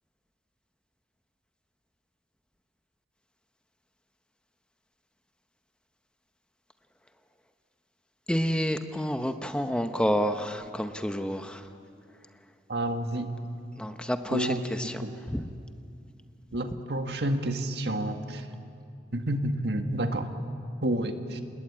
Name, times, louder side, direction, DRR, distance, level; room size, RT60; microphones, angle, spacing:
voice 1, 8.3-11.6 13.8-14.9 15.3-15.4, equal, 5° left, 7 dB, 0.8 m, -29 dB
voice 2, 12.7-13.3 14.3-15.1 16.5-18.5 19.1-20.3 20.8-21.4, right 1 dB, 70° right, 6 dB, 1.8 m, -30 dB
29.0 x 20.5 x 8.7 m, 2.4 s
head